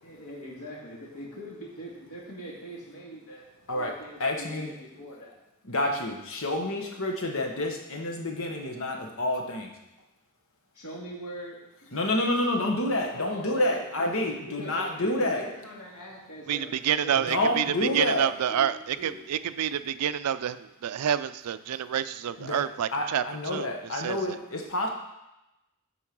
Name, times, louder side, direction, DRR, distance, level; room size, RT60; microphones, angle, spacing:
voice 1, 0.0-5.3 10.7-12.2 13.1-16.7 17.0-18.7 19.0-19.2, equal, 85° left, -3 dB, 2.4 m, -42 dB
voice 2, 3.7-4.7 5.6-9.7 11.9-15.4 17.2-18.3 22.4-24.9, left 1 dB, 65° left, 2 dB, 1.3 m, -29 dB
voice 3, 16.8-24.4, right 9 dB, 90° right, 14 dB, 0.4 m, -28 dB
8.5 x 4.5 x 6.1 m, 0.93 s
head